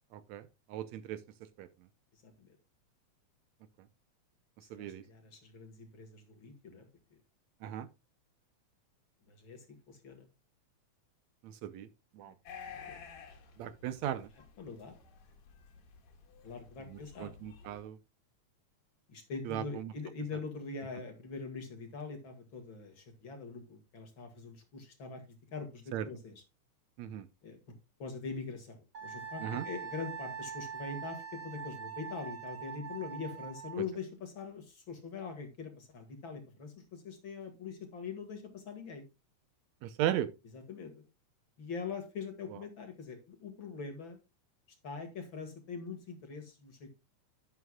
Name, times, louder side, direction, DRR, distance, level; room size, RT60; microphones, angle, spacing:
voice 1, 0.1-1.2 1.6-1.7 4.7-5.0 7.6-7.9 11.4-11.9 12.1-12.3 13.6-14.3 16.9-18.0 19.5-19.9 25.9-26.1 27.0-27.3 29.4-29.6 39.8-40.3, right 11 dB, 75° right, 2.0 m, -37 dB
voice 2, 2.2-2.6 4.6-6.9 9.3-10.3 12.2-12.3 12.8-13.0 14.6-15.0 16.4-17.4 19.1-25.2 25.5-26.4 27.4-27.6 28.0-39.1 40.5-40.9 41.6-44.2 44.8-46.9, left 5 dB, 45° left, 2.3 m, -43 dB
sound 1, 12.5-17.8, left 6 dB, 70° left, 2.7 m, -52 dB
Wind instrument woodwind instrument, 28.9-33.8, right 7 dB, 45° right, 3.5 m, -43 dB
11.5 x 9.7 x 2.3 m
omnidirectional pair, 3.3 m